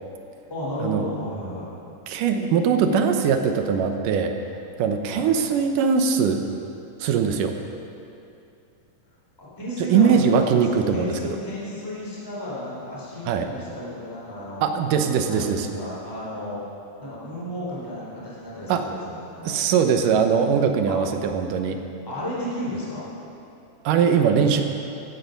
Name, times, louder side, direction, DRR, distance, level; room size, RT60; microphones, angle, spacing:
voice 1, 0.5-1.7 5.0-5.2 9.4-14.7 15.3-16.6 17.0-19.6 20.9-21.0 22.1-23.1, left 1 dB, 5° left, -7 dB, 3.6 m, -33 dB
voice 2, 2.1-4.3 4.8-6.4 7.0-7.5 9.9-11.2 13.3-13.5 14.6-15.7 18.7-18.9 19.4-21.8 23.8-24.6, right 6 dB, 80° right, 6 dB, 2.6 m, -21 dB
16.0 x 13.5 x 5.3 m, 2.7 s
omnidirectional pair, 3.8 m